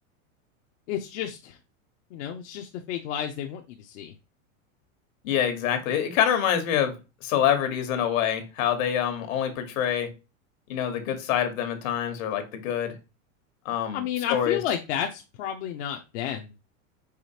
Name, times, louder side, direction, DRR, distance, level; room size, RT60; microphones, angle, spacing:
voice 1, 0.9-1.6 2.1-4.1 13.9-16.6, left 10 dB, 55° left, 3 dB, 0.7 m, -31 dB
voice 2, 5.2-6.9 7.2-10.1 10.7-12.9 13.6-14.0 14.3-14.6, left 9 dB, 70° left, 7 dB, 1.4 m, -26 dB
4.9 x 3.2 x 2.8 m, 0.29 s
supercardioid pair, 135°, 41 cm